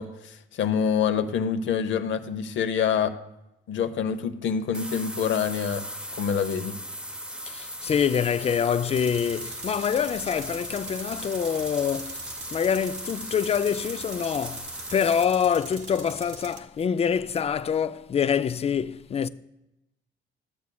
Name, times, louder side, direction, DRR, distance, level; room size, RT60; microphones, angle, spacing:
voice 1, 0.0-3.2 3.7-5.8 6.1-6.8, left 7 dB, 70° left, 0.8 m, -26 dB
sound 1, 4.7-15.2, equal, 5° right, 0.7 m, -38 dB
voice 2, 7.5-12.2 12.5-19.3, left 7 dB, 30° left, 0.4 m, -26 dB
Tools, 8.9-16.6, right 4 dB, 60° right, 1.2 m, -43 dB
13.5 x 8.2 x 2.3 m
cardioid pair, 90°, 20 cm